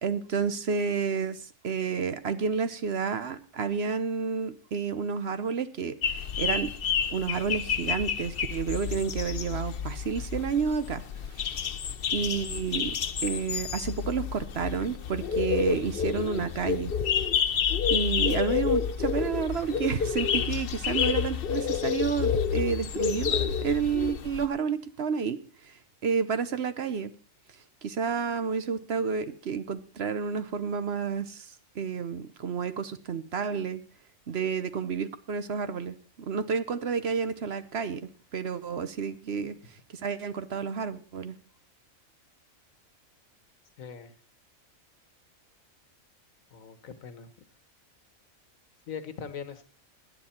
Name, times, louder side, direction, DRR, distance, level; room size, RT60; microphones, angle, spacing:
voice 1, 0.0-6.7 7.1-11.0 11.3-11.6 12.1-12.9 13.2-16.9 17.9-25.4 25.6-27.1 27.8-33.8 34.3-35.9 36.3-39.5 40.0-41.4, right 6 dB, 55° right, 12 dB, 1.0 m, -30 dB
sound 1, 6.0-24.5, left 7 dB, 50° left, 0.8 m, -29 dB
voice 2, 43.8-44.1 46.5-47.3 48.9-49.6, left 7 dB, 75° left, 11 dB, 1.6 m, -40 dB
17.0 x 10.5 x 4.3 m, 0.39 s
omnidirectional pair, 1.4 m